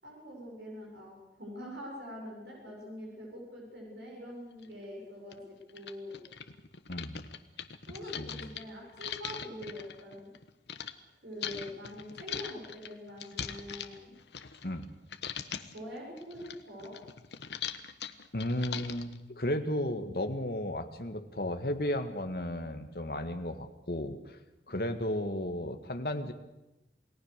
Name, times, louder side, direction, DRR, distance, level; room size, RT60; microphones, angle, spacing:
voice 1, 0.0-6.2 7.9-10.3 11.2-14.1 15.7-17.0, equal, 80° right, -2 dB, 7.5 m, -44 dB
sound 1, 4.6-4.7 5.3-5.4 5.7-10.9 11.4-14.9 15.1-15.8 16.2-19.2, left 8 dB, 80° left, 1.3 m, -41 dB
voice 2, 6.9-7.3 8.2-8.5 14.6-14.9 18.3-24.4 24.7-26.3, left 1 dB, 55° left, 7 dB, 1.9 m, -34 dB
28.5 x 18.5 x 6.7 m, 0.97 s
head